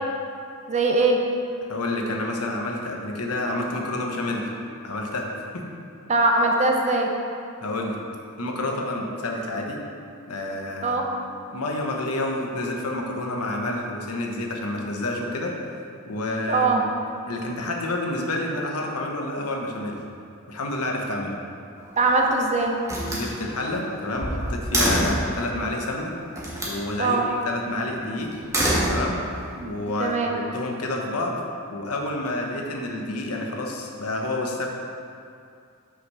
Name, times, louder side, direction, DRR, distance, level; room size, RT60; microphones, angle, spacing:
voice 1, 0.7-1.2 6.1-7.1 10.8-11.0 16.5-16.8 22.0-22.8 27.0-27.3 29.6-29.7 30.0-30.3, right 3 dB, 30° right, 1 dB, 0.5 m, -21 dB
voice 2, 1.7-4.4 4.8-5.3 5.5-5.6 7.6-8.0 8.4-9.8 10.3-11.0 11.5-15.5 16.1-16.8 17.3-20.0 20.5-21.4 23.1-26.1 26.6-28.3 28.9-29.2 29.6-31.4 31.7-34.7, left 2 dB, 85° left, 0 dB, 1.0 m, -29 dB
Slam, 21.8-22.3 22.8-25.3 26.3-26.8 28.3-29.5, right 1 dB, 15° right, 1.2 m, -26 dB
5.9 x 4.8 x 5.4 m, 2.4 s
head